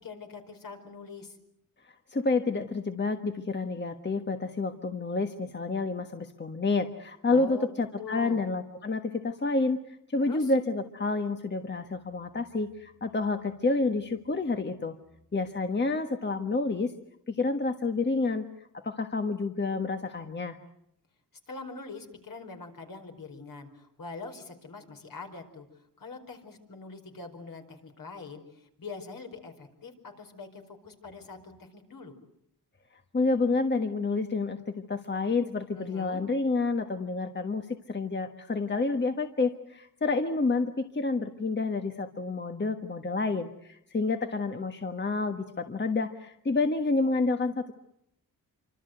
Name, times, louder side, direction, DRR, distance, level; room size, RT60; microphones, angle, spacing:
voice 1, 0.0-1.4 7.3-7.7 8.0-8.4 10.2-10.5 21.5-32.1 35.7-36.2, left 4 dB, 65° left, 4 dB, 5.0 m, -43 dB
voice 2, 1.8-15.0 15.3-16.9 17.3-18.5 18.8-20.6 33.1-47.7, left 3 dB, 30° left, 6 dB, 1.4 m, -29 dB
27.0 x 25.5 x 8.0 m, 0.75 s
wide cardioid pair, 115°, 37 cm